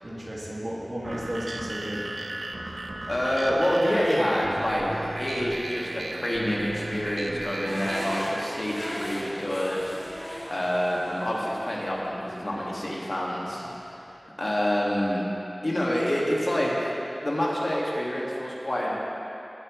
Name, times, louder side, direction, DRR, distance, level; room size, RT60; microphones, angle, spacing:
voice 1, 0.0-2.1 13.6-13.7, equal, 50° right, -5 dB, 2.1 m, -34 dB
sound 1, 1.0-8.2, right 2 dB, 90° right, 0.6 m, -35 dB
voice 2, 3.1-9.8 10.5-13.6 14.4-15.2 15.6-16.9 17.2-18.9, equal, 55° left, -5 dB, 2.0 m, -27 dB
sound 2, 7.7-13.7, equal, 25° left, 2.6 m, -39 dB
17.0 x 7.7 x 3.2 m, 3.0 s
wide cardioid pair, 45°, 0 cm